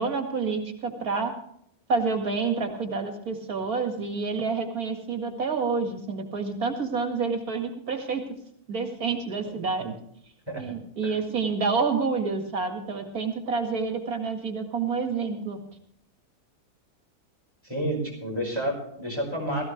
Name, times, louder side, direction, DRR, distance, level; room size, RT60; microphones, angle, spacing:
voice 1, 0.0-1.3 1.9-8.2 8.7-9.9 10.5-15.6, right 4 dB, 80° right, 4 dB, 2.5 m, -28 dB
voice 2, 10.5-10.8 11.0-11.2 17.6-19.6, right 1 dB, 15° right, 0 dB, 5.1 m, -30 dB
18.0 x 15.0 x 3.3 m, 0.69 s
omnidirectional pair, 1.6 m